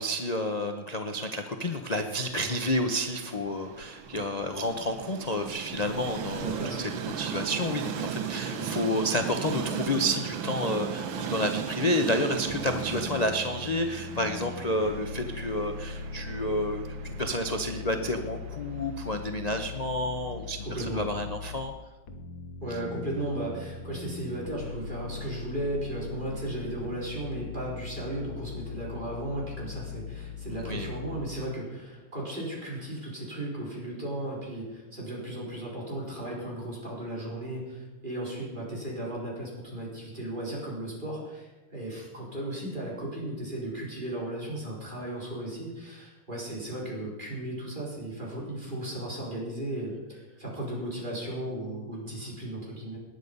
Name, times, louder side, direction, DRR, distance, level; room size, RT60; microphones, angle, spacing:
voice 1, 0.0-21.7 30.5-30.9, left 1 dB, 50° left, 5 dB, 0.4 m, -30 dB
Train, 2.2-20.3, right 8 dB, 75° right, 1.7 m, -37 dB
voice 2, 6.4-6.9 8.5-8.7 17.8-18.1 20.6-21.1 22.6-53.0, right 1 dB, 25° right, -4 dB, 4.7 m, -35 dB
sound 1, 12.5-21.7 22.1-31.3, left 5 dB, 85° left, 2.0 m, -40 dB
19.5 x 10.0 x 5.5 m, 1.2 s
omnidirectional pair, 2.2 m